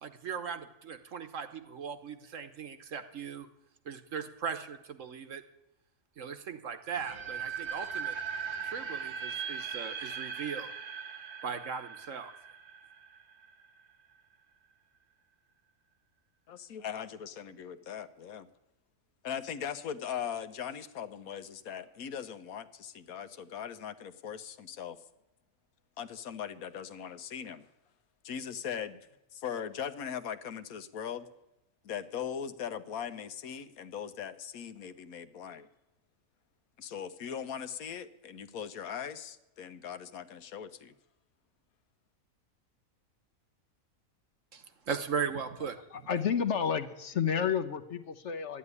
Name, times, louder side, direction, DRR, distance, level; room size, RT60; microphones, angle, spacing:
voice 1, 0.0-3.5 3.8-5.4 6.2-8.1 8.6-10.7 11.4-12.3 44.5-45.8, right 6 dB, 60° right, 9 dB, 1.3 m, -38 dB
sound 1, 6.9-13.8, right 6 dB, 80° right, 1.6 m, -39 dB
voice 2, 16.5-18.5 19.2-25.0 26.0-27.7 28.2-29.0 29.3-31.3 31.8-35.7 36.8-40.9, left 8 dB, 75° left, 11 dB, 1.3 m, -40 dB
voice 3, 45.9-48.6, left 7 dB, 55° left, 8 dB, 1.0 m, -31 dB
12.5 x 9.9 x 9.6 m, 0.88 s
omnidirectional pair, 1.6 m